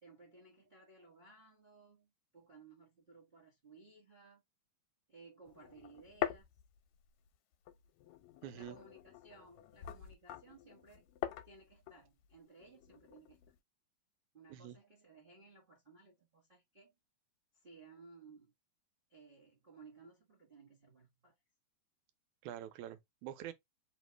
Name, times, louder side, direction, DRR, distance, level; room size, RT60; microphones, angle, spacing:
voice 1, 0.0-4.4 5.1-6.5 8.5-11.0 11.4-13.4 14.3-16.9 17.5-18.5 19.1-21.4, right 4 dB, 50° right, 0.6 m, -59 dB
sound 1, 5.5-7.3 7.7-13.6, left 12 dB, 80° left, 1.8 m, -44 dB
voice 2, 8.4-8.8 14.5-14.8 22.4-23.5, right 11 dB, 90° right, 2.0 m, -46 dB
4.2 x 3.0 x 3.1 m
omnidirectional pair, 3.4 m